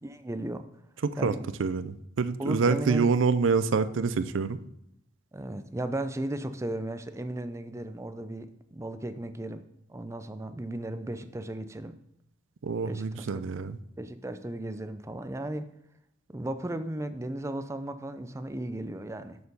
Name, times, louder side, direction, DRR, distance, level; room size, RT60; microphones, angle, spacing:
voice 1, 0.0-0.7 1.2-1.5 2.4-3.1 5.3-12.0 12.8-13.3 14.0-15.7 16.3-19.4, right 1 dB, 15° right, 10 dB, 0.5 m, -35 dB
voice 2, 1.0-1.3 1.6-4.6 12.6-13.8, right 5 dB, 75° right, 13 dB, 0.5 m, -26 dB
6.8 x 6.7 x 5.3 m, 0.79 s
head